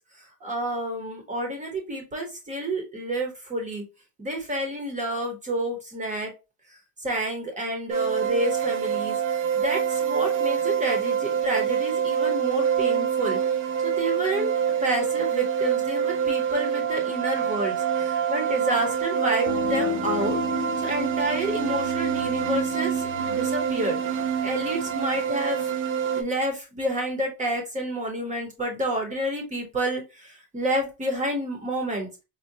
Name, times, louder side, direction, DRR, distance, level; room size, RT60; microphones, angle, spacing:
voice 1, 0.4-3.8 4.2-6.3 7.0-13.4 13.8-14.5 14.8-24.0 24.4-25.7 26.1-32.1, right 1 dB, 15° right, 3 dB, 0.8 m, -29 dB
sound 1, 7.9-26.2, right 8 dB, 90° right, 0.8 m, -26 dB
sound 2, 19.5-24.9, left 12 dB, 85° left, 0.6 m, -35 dB
4.7 x 2.2 x 2.7 m, 0.28 s
cardioid pair, 160°, 46 cm